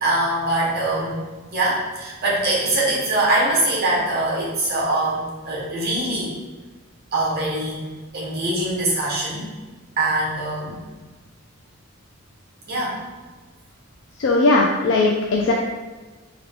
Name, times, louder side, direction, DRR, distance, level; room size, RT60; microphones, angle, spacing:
voice 1, 0.0-1.2 1.5-6.3 7.1-7.8 8.1-9.4 10.0-10.8 12.7-13.0, right 2 dB, 45° right, -5 dB, 1.0 m, -23 dB
voice 2, 14.2-15.5, left 2 dB, 55° left, -1 dB, 0.3 m, -18 dB
3.5 x 2.2 x 3.5 m, 1.3 s
head